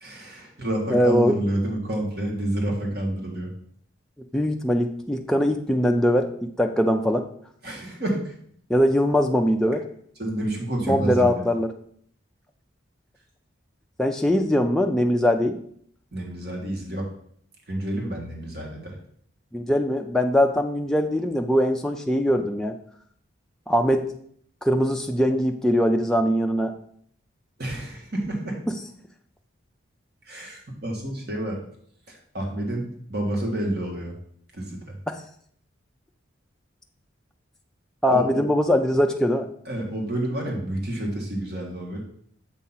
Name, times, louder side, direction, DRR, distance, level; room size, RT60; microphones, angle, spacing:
voice 1, 0.0-3.5 7.6-8.3 10.2-11.3 16.1-17.1 17.7-18.9 27.6-28.6 30.2-31.6 32.1-32.8 33.1-34.1 34.5-34.9 38.1-38.4 39.6-42.0, right 1 dB, 50° right, 0 dB, 1.5 m, -29 dB
voice 2, 0.9-1.4 4.3-6.3 6.6-7.3 8.7-9.8 10.9-11.7 14.0-15.6 19.5-22.7 23.7-24.1 24.6-26.7 35.1-35.2 38.0-39.5, equal, 5° left, 2 dB, 0.3 m, -21 dB
7.3 x 2.8 x 5.6 m, 0.64 s
head